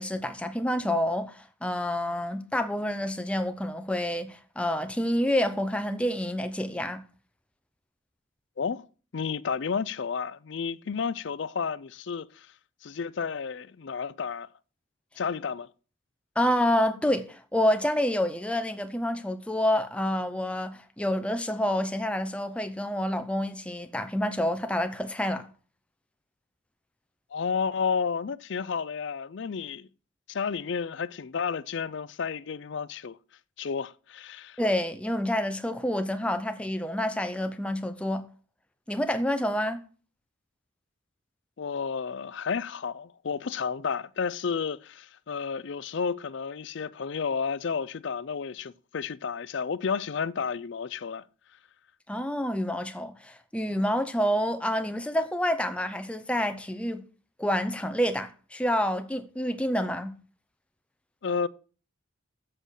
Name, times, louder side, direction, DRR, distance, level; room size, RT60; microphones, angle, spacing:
voice 1, 0.0-7.0 16.4-25.5 34.6-38.3 38.9-39.8 52.1-57.1 57.4-60.2, left 1 dB, 5° left, 0.6 m, -28 dB
voice 2, 8.6-8.9 9.1-12.5 12.8-14.5 15.2-15.7 27.3-29.9 30.3-33.2 33.6-34.6 41.6-51.2 61.2-61.5, left 6 dB, 60° left, 0.4 m, -31 dB
7.8 x 6.4 x 6.4 m
head